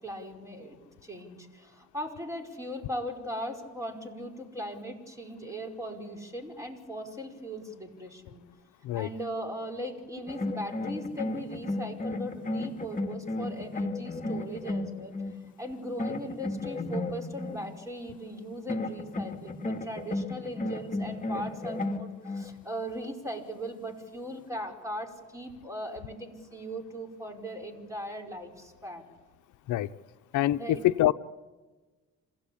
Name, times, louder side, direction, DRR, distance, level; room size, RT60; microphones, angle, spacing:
voice 1, 0.0-8.4 8.9-15.1 15.6-29.1 30.6-30.8, equal, 10° right, 2 dB, 5.1 m, -39 dB
sound 1, 10.3-15.5 16.0-17.6 18.7-22.5, left 2 dB, 25° left, 1.9 m, -34 dB
voice 2, 30.3-31.1, left 14 dB, 80° left, 10 dB, 0.7 m, -25 dB
27.0 x 17.0 x 8.6 m, 1.3 s
cardioid pair, 90°, 30 cm